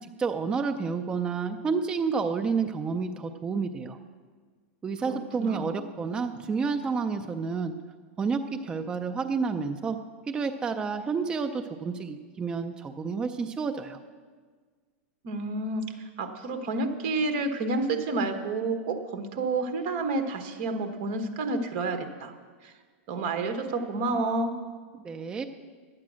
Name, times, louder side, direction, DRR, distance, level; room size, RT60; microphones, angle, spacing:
voice 1, 0.0-4.0 4.8-7.7 8.2-10.0 10.3-14.0 25.0-25.4, right 5 dB, 15° right, 6 dB, 0.4 m, -30 dB
voice 2, 5.1-5.9 15.2-22.3 22.6-22.7 23.1-24.5, right 3 dB, 45° right, 6 dB, 1.2 m, -30 dB
11.5 x 8.7 x 6.2 m, 1.5 s
supercardioid pair, 150°, 7 cm